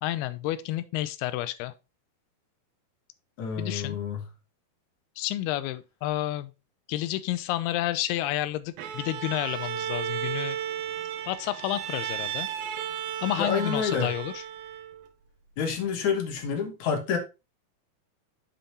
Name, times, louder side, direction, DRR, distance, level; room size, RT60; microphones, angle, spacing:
voice 1, 0.0-1.7 3.6-4.0 5.2-6.5 6.9-10.6 11.3-12.5 13.2-14.4, left 14 dB, 90° left, 2.6 m, -30 dB
voice 2, 3.4-4.3 13.4-14.1 15.6-17.2, left 6 dB, 60° left, 2.3 m, -28 dB
Bowed string instrument, 8.8-15.1, right 10 dB, 75° right, 2.4 m, -34 dB
7.4 x 5.2 x 4.0 m
omnidirectional pair, 4.5 m